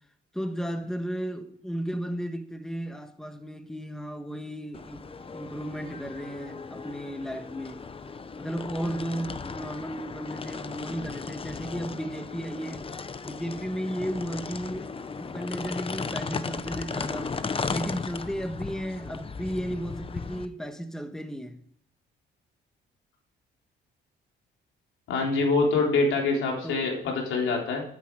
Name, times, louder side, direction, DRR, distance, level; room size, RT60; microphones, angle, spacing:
voice 1, 0.3-5.1 5.3-7.8 8.4-12.9 13.2-17.4 17.7-21.6 26.6-26.7, equal, 5° left, 1.4 m, -34 dB
sound 1, 4.7-20.5, left 4 dB, 30° left, 0.8 m, -36 dB
voice 2, 25.1-27.8, left 3 dB, 85° left, 3.9 m, -25 dB
12.0 x 9.8 x 4.8 m
cardioid pair, 90°, 20 cm